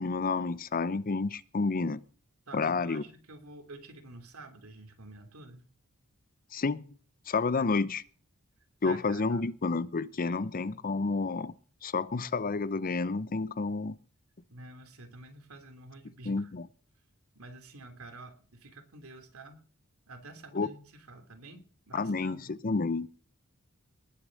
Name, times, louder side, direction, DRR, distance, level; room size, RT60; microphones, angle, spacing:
voice 1, 0.0-2.0 2.5-3.0 6.5-6.9 7.3-8.0 8.8-11.5 11.8-14.0 16.3-16.7 20.5-20.7 21.9-23.1, left 4 dB, 40° left, 0.6 m, -30 dB
voice 2, 2.5-5.6 7.6-7.7 8.8-9.5 10.2-10.8 14.5-16.5 17.3-19.6 20.1-22.5, right 2 dB, 75° right, 2.9 m, -49 dB
19.5 x 6.7 x 6.5 m
head